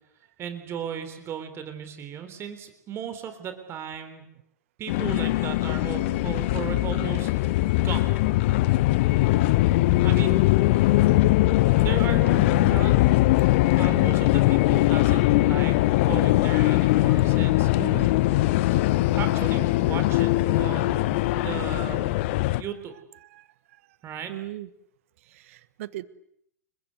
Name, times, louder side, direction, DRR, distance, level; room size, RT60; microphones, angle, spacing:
voice 1, 0.4-4.3 4.8-8.0 10.0-10.5 11.7-12.9 13.7-15.8 16.0-17.7 18.7-18.8 19.1-22.1 22.6-22.9 24.0-24.3, right 8 dB, 25° right, 9 dB, 3.7 m, -36 dB
sound 1, 4.9-22.6, left 17 dB, 45° left, 1.1 m, -21 dB
voice 2, 17.8-18.1 23.2-23.5 24.3-24.7 25.3-26.0, right 15 dB, 50° right, 18 dB, 1.5 m, -37 dB
30.0 x 23.0 x 8.2 m, 0.73 s
figure-of-eight pair, 95°, 9 cm